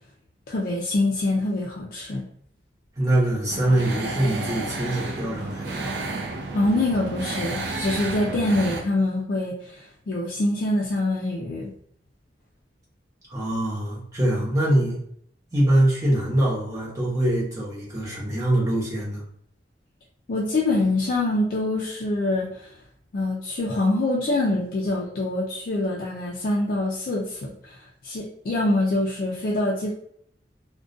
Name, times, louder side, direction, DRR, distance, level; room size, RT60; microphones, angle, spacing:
voice 1, 0.5-2.2 6.5-11.7 20.3-22.7 23.1-27.8 28.0-29.9, left 2 dB, 55° left, -3 dB, 0.4 m, -25 dB
voice 2, 3.0-5.9 13.3-15.0 15.5-19.2, right 1 dB, 20° right, -7 dB, 0.8 m, -23 dB
sound 1, 3.5-8.8, right 3 dB, 65° right, 0.4 m, -31 dB
2.4 x 2.1 x 2.5 m, 0.67 s
head